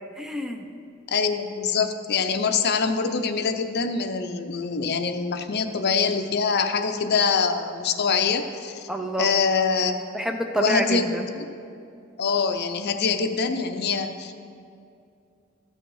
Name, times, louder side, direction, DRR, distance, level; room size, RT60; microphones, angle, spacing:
voice 1, 0.2-0.6 8.9-9.3 10.1-11.3, right 1 dB, 5° right, 5 dB, 0.5 m, -27 dB
voice 2, 1.1-8.9 9.2-10.0 10.6-11.5 12.2-14.3, left 5 dB, 55° left, 7 dB, 0.6 m, -24 dB
13.5 x 6.4 x 4.8 m, 2.4 s
head